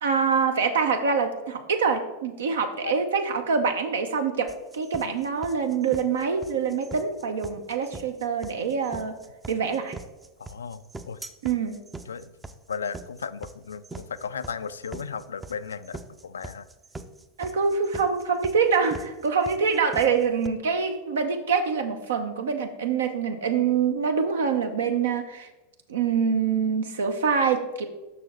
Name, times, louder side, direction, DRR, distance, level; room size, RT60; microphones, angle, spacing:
voice 1, 0.0-9.2 9.5-9.9 11.4-11.8 17.4-25.5 25.9-27.9, right 5 dB, 65° right, 6 dB, 0.7 m, -25 dB
sound 1, 4.5-20.5, right 3 dB, 10° right, 0.5 m, -42 dB
voice 2, 10.4-11.2 12.1-12.3 12.7-16.7, left 6 dB, 70° left, 14 dB, 0.3 m, -35 dB
6.7 x 6.1 x 4.3 m, 1.1 s
figure-of-eight pair, 85°, 0 cm